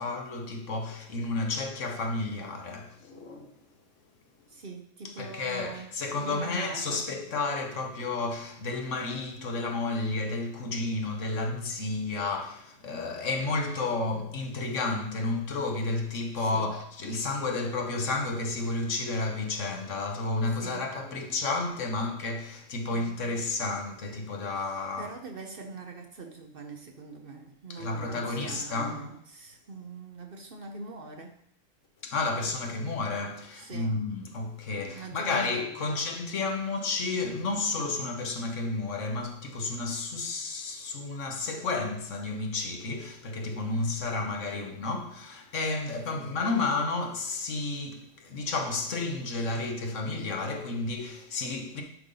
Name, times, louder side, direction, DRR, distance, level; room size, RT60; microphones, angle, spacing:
voice 1, 0.0-3.5 5.0-25.1 27.7-29.0 32.0-51.8, left 3 dB, 65° left, 1.4 m, -31 dB
voice 2, 4.5-5.9 6.1-7.0 16.4-16.7 20.5-20.9 22.9-23.2 24.5-31.4 33.5-34.0 34.8-36.0, right 3 dB, 50° right, 0.9 m, -43 dB
10.5 x 5.3 x 3.9 m
omnidirectional pair, 1.4 m